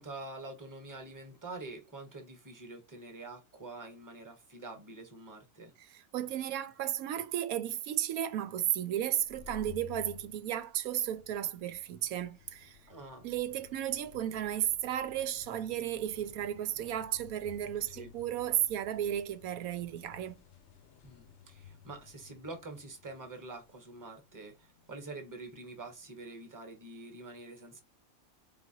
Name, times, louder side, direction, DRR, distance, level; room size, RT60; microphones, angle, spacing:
voice 1, 0.0-5.7 12.9-13.3 17.9-18.1 21.0-27.8, right 2 dB, 15° right, 1.0 m, -46 dB
voice 2, 5.8-12.8 13.2-20.4, right 11 dB, 85° right, 1.0 m, -34 dB
sound 1, 9.1-26.5, left 8 dB, 60° left, 0.9 m, -56 dB
4.3 x 3.6 x 2.7 m
omnidirectional pair, 1.5 m